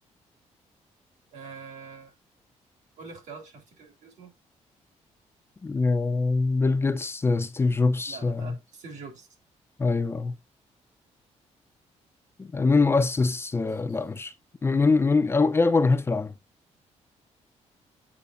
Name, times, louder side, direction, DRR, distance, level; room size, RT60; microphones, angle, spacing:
voice 1, 1.3-2.1 3.0-4.3 8.1-9.3, right 5 dB, 75° right, 3.4 m, -44 dB
voice 2, 5.6-8.5 9.8-10.3 12.4-14.3 14.6-16.3, left 3 dB, 20° left, 0.5 m, -23 dB
8.4 x 5.1 x 2.6 m
cardioid pair, 160°, 12 cm